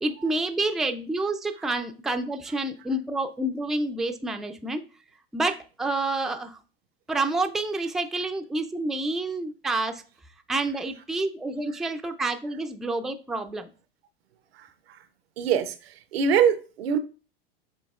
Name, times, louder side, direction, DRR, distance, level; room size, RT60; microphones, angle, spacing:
voice 1, 0.0-4.8 5.3-6.6 7.1-10.0 10.5-13.7, right 2 dB, ahead, 0.4 m, -28 dB
voice 2, 15.4-15.7 16.1-17.0, right 7 dB, 85° right, 0.6 m, -23 dB
7.7 x 2.8 x 2.4 m
hypercardioid pair, 105°, 30 cm